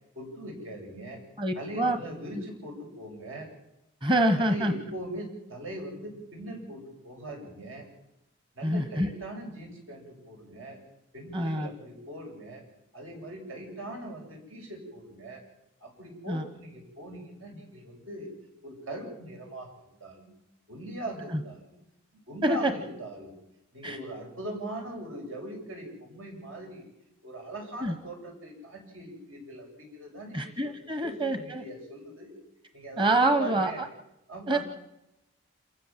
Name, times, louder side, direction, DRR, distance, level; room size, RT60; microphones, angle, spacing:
voice 1, 0.1-1.2 1.5-3.5 4.4-7.9 8.5-10.8 11.1-12.7 12.9-15.4 15.8-18.3 18.6-20.4 20.7-21.8 22.1-23.3 23.7-26.9 27.2-30.7 31.0-32.4 32.7-33.9 34.3-34.6, right 1 dB, 80° right, 1 dB, 7.9 m, -41 dB
voice 2, 1.4-2.0 4.0-4.7 8.6-9.1 11.3-11.7 16.3-16.4 22.4-22.7 23.8-24.0 27.8-27.9 30.3-31.6 33.0-33.7 34.5-34.6, right 1 dB, 25° right, 8 dB, 1.2 m, -26 dB
28.0 x 16.0 x 7.5 m, 0.89 s
head